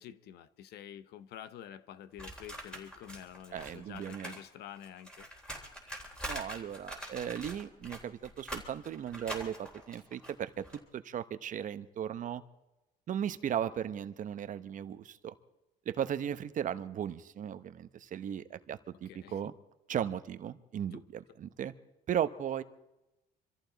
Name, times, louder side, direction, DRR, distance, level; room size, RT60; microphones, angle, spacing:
voice 1, 0.0-5.3 19.0-19.4 20.9-21.0, left 10 dB, 75° left, 15 dB, 0.8 m, -48 dB
sound 1, 2.2-4.4 4.7-10.8, equal, 5° left, 3.6 m, -44 dB
voice 2, 3.5-4.4 6.3-12.4 13.1-15.3 15.9-19.5 19.9-21.7 22.1-22.6, right 9 dB, 50° right, 12 dB, 0.9 m, -36 dB
25.0 x 14.5 x 4.0 m, 0.97 s
cardioid pair, 110°, 17 cm